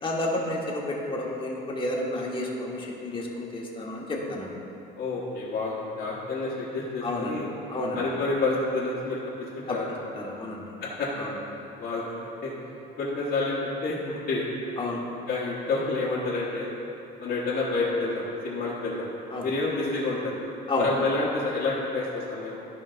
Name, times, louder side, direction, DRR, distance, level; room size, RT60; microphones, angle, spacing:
voice 1, 0.0-4.5 7.0-7.3 7.7-8.0 9.7-9.8 10.1-10.6 11.2-11.3 14.8-15.0 19.3-19.5 20.7-20.9, left 2 dB, 30° left, -2 dB, 1.4 m, -30 dB
voice 2, 5.0-7.5 7.9-9.2 9.6-9.9 10.8-11.3 11.8-12.5 13.0-14.4 15.3-16.7 17.2-19.1 19.4-20.3 20.8-22.6, left 3 dB, 65° left, -9 dB, 1.3 m, -29 dB
13.0 x 5.1 x 2.6 m, 2.9 s
cardioid pair, 110°, 17 cm